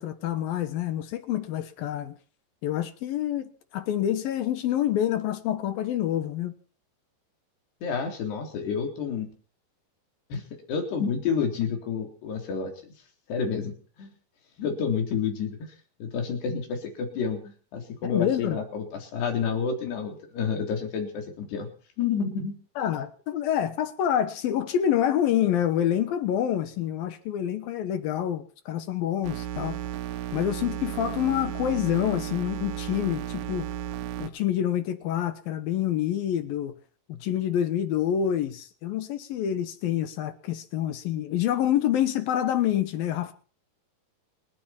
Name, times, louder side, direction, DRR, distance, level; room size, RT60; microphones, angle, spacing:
voice 1, 0.0-2.1 2.6-6.5 18.0-18.6 22.8-29.8 30.3-33.7 34.2-36.8 37.1-43.3, left 10 dB, 70° left, 2.8 m, -27 dB
voice 2, 7.8-9.3 10.3-10.4 10.7-12.7 13.3-13.7 14.0-14.1 14.6-15.7 16.0-21.7 22.0-22.5, left 6 dB, 90° left, 5.8 m, -29 dB
sound 1, 29.2-34.3, right 12 dB, 75° right, 2.9 m, -34 dB
29.5 x 10.5 x 4.5 m
omnidirectional pair, 4.6 m